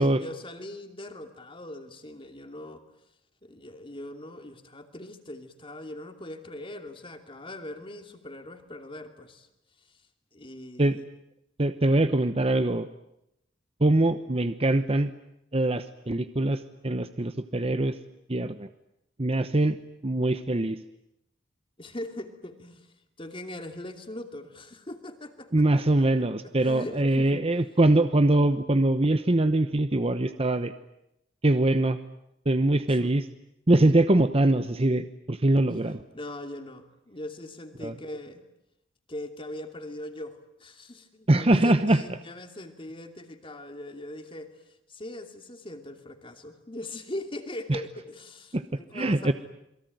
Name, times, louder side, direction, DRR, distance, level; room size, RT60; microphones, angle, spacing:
voice 1, 0.0-2.8 3.4-9.5 10.3-11.0 21.8-22.9 23.2-26.2 26.6-27.4 32.9-33.1 36.1-38.4 39.1-44.5 44.9-49.3, left 1 dB, 30° left, 6 dB, 2.8 m, -41 dB
voice 2, 11.6-12.9 13.8-15.1 15.5-18.0 18.3-18.7 19.2-19.8 20.0-20.8 25.5-30.7 31.4-32.0 32.5-33.3 33.7-36.0 37.8-37.9 41.3-42.0 47.7-47.8 48.5-48.6 48.9-49.3, right 1 dB, 30° right, 10 dB, 1.0 m, -23 dB
28.0 x 22.5 x 9.4 m, 0.82 s
head